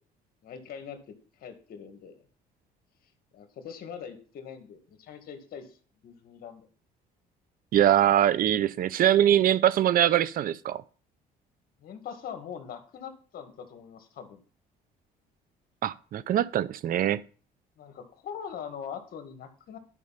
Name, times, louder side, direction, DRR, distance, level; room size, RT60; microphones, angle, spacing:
voice 1, 0.4-2.2 3.3-5.7 6.0-6.7 11.8-14.4 17.8-19.8, left 7 dB, 60° left, 2.0 m, -42 dB
voice 2, 7.7-10.8 15.8-17.2, right 11 dB, 55° right, 0.7 m, -23 dB
11.0 x 5.1 x 5.8 m
cardioid pair, 110°, 17 cm